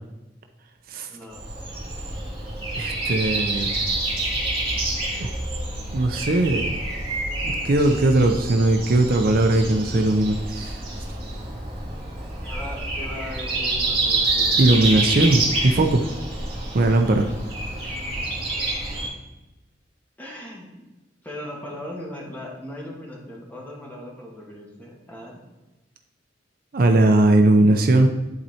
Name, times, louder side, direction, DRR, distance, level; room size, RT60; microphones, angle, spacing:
voice 1, 1.1-1.4 12.4-14.8 17.2-17.3 20.2-20.7 21.2-25.4, left 1 dB, 10° left, -3 dB, 1.5 m, -38 dB
Breathing, 1.3-19.1, right 2 dB, 30° right, 2.2 m, -27 dB
voice 2, 2.8-3.7 5.2-5.3 5.9-6.7 7.4-10.8 14.6-16.1 16.7-17.3 26.7-28.1, right 2 dB, 50° right, 5 dB, 0.5 m, -19 dB
10.5 x 4.3 x 2.8 m, 1.1 s
head